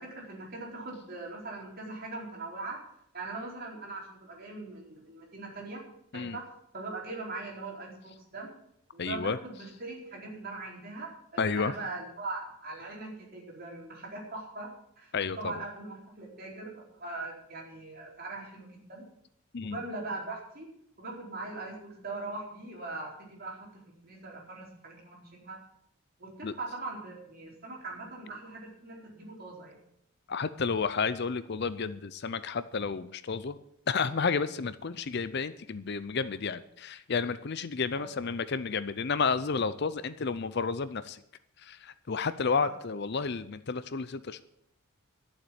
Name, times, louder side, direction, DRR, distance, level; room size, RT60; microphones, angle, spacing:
voice 1, 0.0-2.8 3.1-5.8 6.1-6.4 6.7-8.5 8.9-14.7 15.0-19.1 19.6-20.7 21.0-25.6 26.2-29.8 37.9-38.1 42.6-42.7, right 3 dB, 45° right, -2 dB, 4.3 m, -41 dB
voice 2, 9.0-9.4 11.4-11.7 15.1-15.5 19.5-19.8 26.4-26.5 30.3-33.6 33.9-41.2 41.6-44.4, left 5 dB, 50° left, 14 dB, 0.5 m, -31 dB
12.0 x 7.3 x 9.3 m, 0.74 s
head